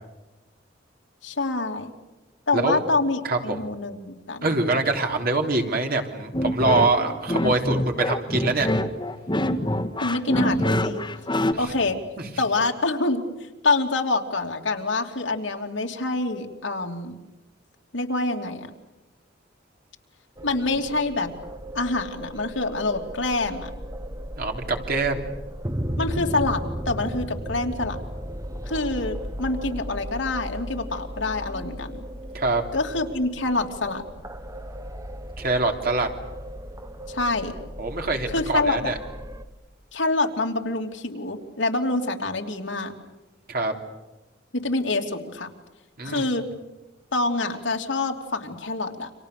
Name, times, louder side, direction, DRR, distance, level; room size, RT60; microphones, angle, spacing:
voice 1, 1.2-1.9 2.5-4.5 10.0-11.0 11.6-12.0 12.4-13.2 13.6-17.2 17.9-18.7 20.4-21.3 21.7-23.7 26.0-28.0 28.7-32.0 32.7-34.0 37.1-37.5 38.3-38.9 39.9-42.9 44.5-45.5 46.0-46.4 47.1-49.1, left 2 dB, 85° left, 3 dB, 3.0 m, -26 dB
voice 2, 3.2-3.7 4.4-8.7 11.5-11.6 12.2-12.3 24.4-25.3 32.3-32.6 35.4-36.1 37.8-39.0 43.5-43.7 46.0-46.3, right 3 dB, 55° right, 3 dB, 3.3 m, -24 dB
sound 1, 6.3-11.5, left 1 dB, 25° left, 1.5 m, -25 dB
sound 2, 20.4-39.4, equal, 20° right, 1.2 m, -35 dB
29.5 x 26.0 x 6.8 m, 1.1 s
head